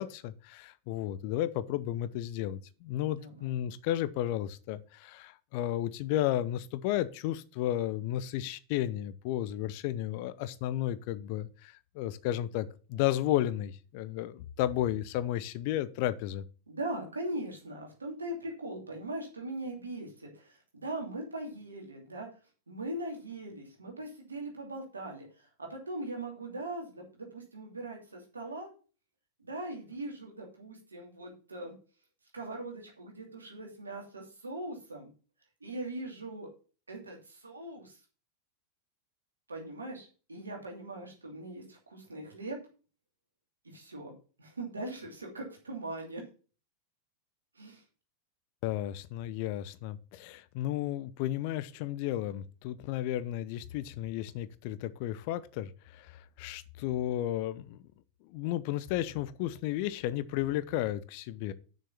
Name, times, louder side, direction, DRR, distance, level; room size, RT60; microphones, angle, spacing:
voice 1, 0.0-16.4 48.6-57.8 58.3-61.5, left 13 dB, 45° left, 0.6 m, -33 dB
voice 2, 3.2-3.6 16.7-22.3 22.7-28.7 29.4-31.7 32.3-35.1 35.6-36.5 36.9-38.0 39.5-42.6 43.6-44.1 44.4-46.2 47.5-47.8, right 1 dB, 75° right, 2.8 m, -40 dB
6.6 x 6.4 x 6.0 m
figure-of-eight pair, 90°, 0 cm